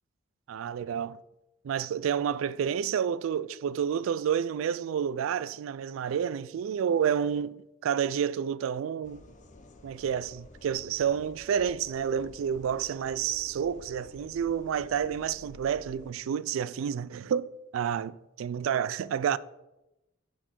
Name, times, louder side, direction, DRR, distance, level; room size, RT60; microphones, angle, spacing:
voice 1, 0.5-1.2 1.6-7.5 7.8-9.2 9.8-19.4, right 8 dB, 90° right, 0.3 m, -29 dB
sound 1, 9.0-16.1, left 2 dB, 40° left, 0.7 m, -51 dB
10.0 x 4.4 x 4.4 m
head